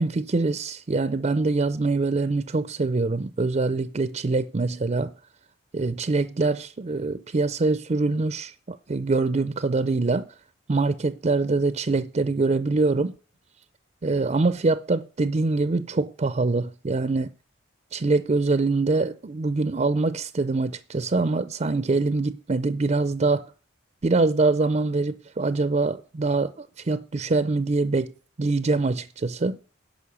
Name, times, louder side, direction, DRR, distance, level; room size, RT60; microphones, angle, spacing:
voice 1, 0.0-5.1 5.7-10.3 10.7-13.1 14.0-17.3 17.9-23.5 24.0-28.1 28.4-29.6, right 3 dB, 35° right, 0.5 m, -24 dB
11.5 x 5.3 x 6.9 m
head